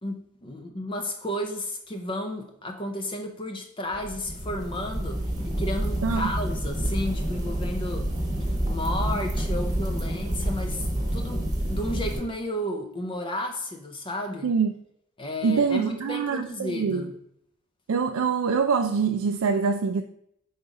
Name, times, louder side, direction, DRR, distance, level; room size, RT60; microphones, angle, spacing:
voice 1, 0.0-8.1 8.4-10.9 11.1-14.5 15.2-17.1, left 1 dB, 25° left, 4 dB, 0.5 m, -33 dB
sound 1, 3.9-12.2, right 1 dB, 20° right, 1.2 m, -28 dB
voice 2, 15.4-17.1 17.9-20.0, right 5 dB, 85° right, 5 dB, 0.4 m, -24 dB
5.4 x 4.0 x 4.7 m, 0.73 s
head